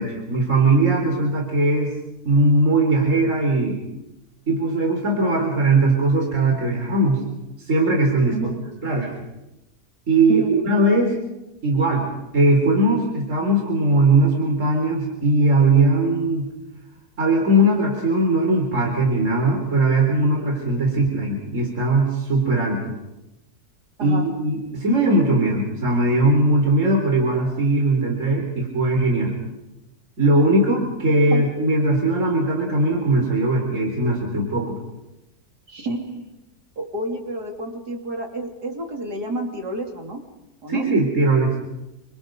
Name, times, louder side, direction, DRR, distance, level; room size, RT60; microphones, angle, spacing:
voice 1, 0.0-1.9 2.2-3.8 4.5-7.2 7.6-8.4 8.8-9.1 10.1-11.1 11.6-12.1 12.3-16.5 17.2-22.9 24.0-29.4 30.2-34.8 40.7-41.5, right 2 dB, 50° right, 1 dB, 4.4 m, -19 dB
voice 2, 35.7-36.3 36.8-40.2 40.6-40.9, right 1 dB, 85° right, 2 dB, 3.8 m, -30 dB
28.5 x 26.0 x 5.3 m, 0.97 s
omnidirectional pair, 1.7 m